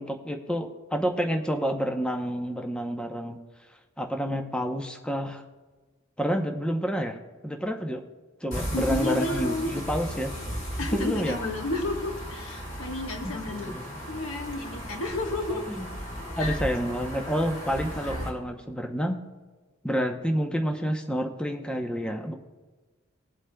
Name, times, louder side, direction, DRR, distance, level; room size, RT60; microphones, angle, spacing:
voice 1, 0.0-3.4 4.0-5.4 6.2-8.0 8.4-10.4 10.9-11.4 13.2-14.0 15.6-15.9 16.4-19.2 19.8-22.3, equal, 5° left, 4 dB, 0.7 m, -29 dB
sound 1, 8.5-18.3, equal, 35° left, 2.7 m, -36 dB
voice 2, 8.7-9.7 10.8-13.7 14.1-15.7 16.3-16.6 18.1-18.3, left 2 dB, 80° left, 3 dB, 1.4 m, -31 dB
20.5 x 8.0 x 2.3 m, 1.3 s
head